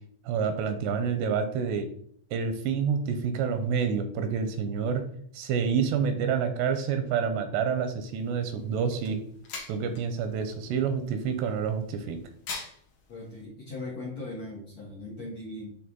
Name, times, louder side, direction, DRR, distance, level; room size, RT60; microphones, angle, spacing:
voice 1, 0.3-1.9 2.3-5.0 5.3-9.2 9.7-12.2, right 6 dB, 85° right, 7 dB, 2.6 m, -28 dB
sound 1, 8.0-13.4, left 4 dB, 90° left, 1.4 m, -45 dB
voice 2, 13.1-15.8, left 2 dB, 70° left, -6 dB, 1.5 m, -39 dB
8.8 x 3.3 x 3.7 m, 0.62 s
omnidirectional pair, 5.1 m